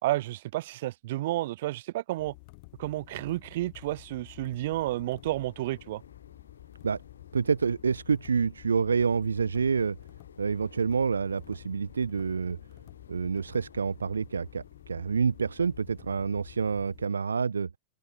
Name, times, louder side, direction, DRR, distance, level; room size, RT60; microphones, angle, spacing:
voice 1, 0.0-2.3 2.8-6.0, right 16 dB, 60° right, 1.2 m, -31 dB
sound 1, 2.2-17.1, left 28 dB, 50° left, 4.8 m, -51 dB
sound 2, 4.7-16.3, left 6 dB, 80° left, 5.1 m, -55 dB
voice 2, 7.3-10.0 10.4-12.6 13.1-17.7, right 5 dB, 80° right, 0.7 m, -28 dB
open air
figure-of-eight pair, 95°, 0 cm